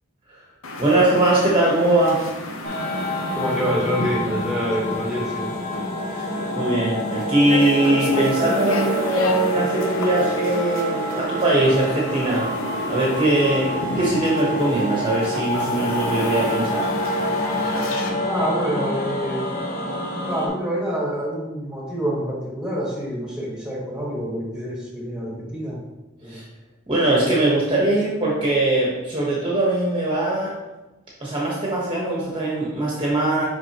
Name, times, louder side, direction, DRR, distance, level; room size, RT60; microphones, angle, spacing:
sound 1, 0.6-18.1, left 2 dB, 80° left, 0.8 m, -33 dB
voice 1, 0.8-2.4 6.1-12.5 12.9-16.9 26.3-26.4 26.9-30.5 31.2-33.4, right 1 dB, 25° right, -5 dB, 1.1 m, -21 dB
sound 2, 2.6-20.5, equal, 40° left, 1.2 m, -27 dB
voice 2, 3.4-5.5 18.3-19.5 20.3-25.8 26.2-26.4, equal, 5° right, -4 dB, 1.5 m, -27 dB
6.1 x 5.4 x 2.9 m, 1.0 s
head